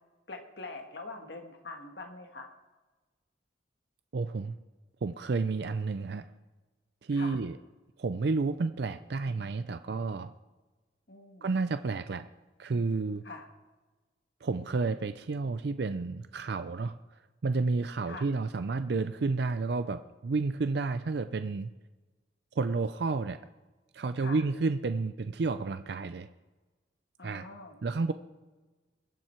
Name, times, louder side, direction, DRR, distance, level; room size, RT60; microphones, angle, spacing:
voice 1, 0.3-2.5 7.1-7.4 11.1-11.5 13.2-13.5 18.1-18.3 24.2-24.4 27.2-27.8, left 3 dB, 65° left, 4 dB, 1.5 m, -44 dB
voice 2, 4.1-4.5 5.0-6.2 7.0-7.6 8.0-10.3 11.4-12.3 12.6-13.2 14.4-17.0 17.4-21.7 22.6-23.4 23.9-26.3 27.2-27.5 27.8-28.1, right 3 dB, 60° right, 10 dB, 0.4 m, -31 dB
22.0 x 7.5 x 4.5 m, 1.2 s
head